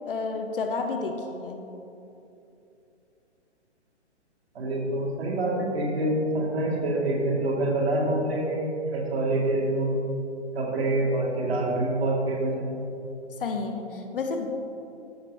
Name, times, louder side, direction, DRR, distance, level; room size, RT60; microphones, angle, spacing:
voice 1, 0.0-1.7 13.4-14.5, left 4 dB, 50° left, 5 dB, 0.9 m, -31 dB
voice 2, 4.5-10.1 10.5-12.7, right 1 dB, 60° right, -1 dB, 2.1 m, -26 dB
14.0 x 5.9 x 3.6 m, 2.8 s
figure-of-eight pair, 130°, 35 cm